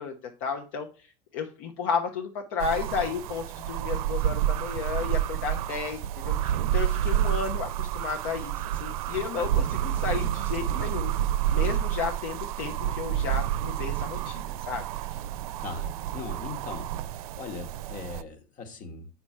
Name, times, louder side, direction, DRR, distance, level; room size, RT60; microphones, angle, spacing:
voice 1, 0.0-6.0 6.2-15.2, left 6 dB, 65° left, 0.9 m, -33 dB
sound 1, 2.6-18.2, right 11 dB, 75° right, 0.5 m, -29 dB
voice 2, 15.6-19.1, left 4 dB, 45° left, 1.6 m, -40 dB
7.1 x 6.0 x 3.2 m
hypercardioid pair, 95°, 19 cm